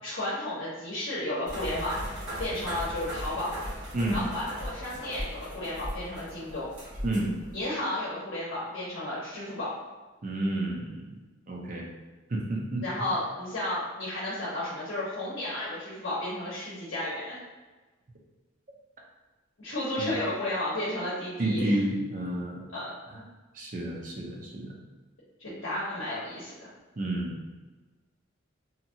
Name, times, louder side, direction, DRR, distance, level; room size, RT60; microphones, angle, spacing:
voice 1, 0.0-2.0 2.4-3.5 4.1-6.7 7.5-9.7 12.8-17.4 19.6-21.8 22.7-22.9 25.4-26.7, left 1 dB, 65° left, -8 dB, 0.8 m, -33 dB
sound 1, 1.5-7.6, equal, 60° right, 1.4 m, -38 dB
voice 2, 10.2-11.1 11.5-11.9 12.3-12.8 20.0-20.1 21.4-22.7 23.1-23.2 23.5-24.7 27.0-27.4, right 1 dB, 40° right, -1 dB, 0.6 m, -30 dB
2.8 x 2.3 x 2.7 m, 1.2 s
head